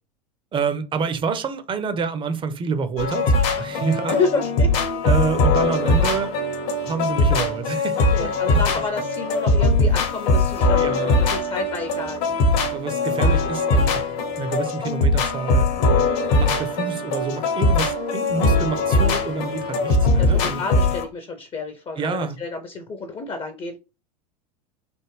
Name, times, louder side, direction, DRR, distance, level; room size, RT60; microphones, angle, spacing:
voice 1, 0.5-4.2 5.0-6.3 6.8-8.6 10.8-11.2 12.7-14.0 14.4-15.7 16.3-20.6 22.0-22.4, right 5 dB, 25° right, 0.5 m, -27 dB
sound 1, 3.0-21.0, left 2 dB, 55° left, 0.9 m, -21 dB
voice 2, 4.1-4.7 8.0-12.2 18.9-19.2 20.2-23.8, left 3 dB, 25° left, 0.6 m, -29 dB
3.4 x 2.2 x 3.1 m
hypercardioid pair, 90°, 21 cm